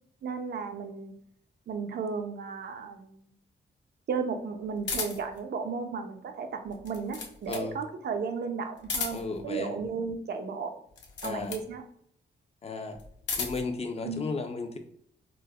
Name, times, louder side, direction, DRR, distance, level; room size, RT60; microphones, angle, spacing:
voice 1, 0.2-1.1 1.7-3.2 4.1-10.8 11.2-11.8 14.0-14.3, right 5 dB, 55° right, 6 dB, 0.5 m, -34 dB
sound 1, 4.8-5.4 6.7-7.7 8.8-9.4 10.9-11.7 12.9-13.7, left 4 dB, 65° left, 0.7 m, -35 dB
voice 2, 9.1-9.7 11.2-11.5 12.6-13.0 13.4-14.8, left 3 dB, 30° left, 6 dB, 0.4 m, -34 dB
4.9 x 2.0 x 2.3 m, 0.68 s
wide cardioid pair, 155°, 20 cm